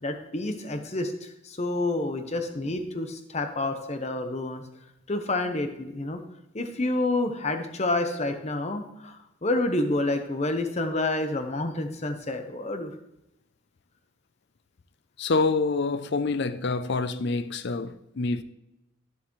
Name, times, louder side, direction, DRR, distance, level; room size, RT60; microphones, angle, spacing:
voice 1, 0.0-4.6 5.1-6.2 6.5-12.9, left 2 dB, 30° left, 0.8 m, -29 dB
voice 2, 15.2-18.4, left 3 dB, 50° left, 0.5 m, -26 dB
12.5 x 7.0 x 3.1 m
head